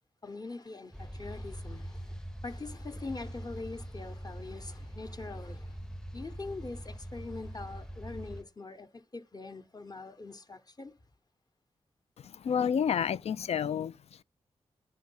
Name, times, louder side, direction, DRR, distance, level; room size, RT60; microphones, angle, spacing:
voice 1, 0.2-5.8 6.1-11.0, left 3 dB, 35° left, 0.9 m, -43 dB
sound 1, 0.9-8.4, equal, 5° left, 0.7 m, -43 dB
voice 2, 12.2-14.2, left 7 dB, 65° left, 0.4 m, -30 dB
9.5 x 3.4 x 5.4 m
cardioid pair, 45°, 11 cm